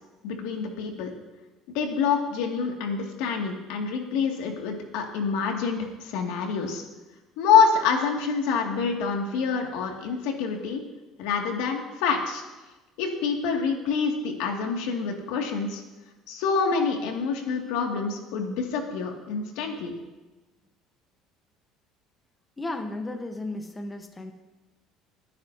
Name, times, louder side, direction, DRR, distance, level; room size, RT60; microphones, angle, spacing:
voice 1, 0.2-1.1 1.7-6.8 7.4-10.8 11.2-12.4 13.0-15.8 16.3-19.9, left 5 dB, 85° left, 1 dB, 2.3 m, -26 dB
voice 2, 22.6-24.3, left 2 dB, 15° left, 5 dB, 1.1 m, -34 dB
24.0 x 10.0 x 2.8 m, 1.1 s
cardioid pair, 150°, 0 cm